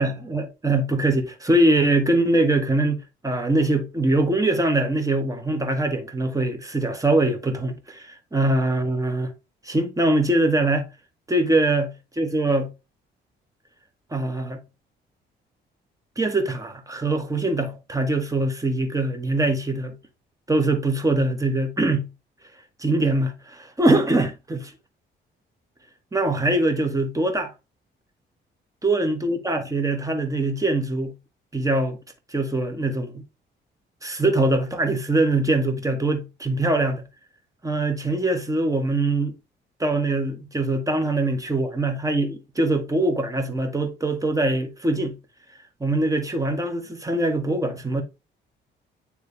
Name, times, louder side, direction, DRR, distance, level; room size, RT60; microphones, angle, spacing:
voice 1, 0.0-9.3 9.6-10.9 11.3-12.7 14.1-14.6 16.1-20.0 20.5-22.1 22.8-24.7 26.1-27.5 28.8-31.1 31.5-32.0 32.3-33.2 34.0-37.0 37.6-39.3 39.8-45.2 45.8-48.0, right 2 dB, 15° right, 1.7 m, -23 dB
9.3 x 3.4 x 3.3 m
cardioid pair, 90°, 20 cm